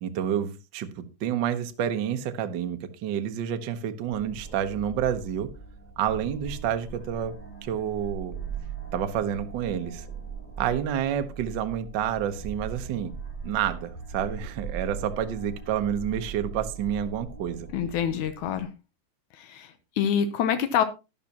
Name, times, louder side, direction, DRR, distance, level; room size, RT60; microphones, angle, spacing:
voice 1, 0.0-5.5 6.0-7.3 7.6-8.4 8.9-10.0 10.6-13.1 13.4-17.7, right 9 dB, 65° right, 1.1 m, -29 dB
sound 1, 4.1-18.6, right 5 dB, 15° left, 1.7 m, -40 dB
voice 2, 17.7-18.7 19.3-20.8, left 8 dB, 80° left, 2.3 m, -26 dB
12.5 x 11.0 x 2.9 m
omnidirectional pair, 3.4 m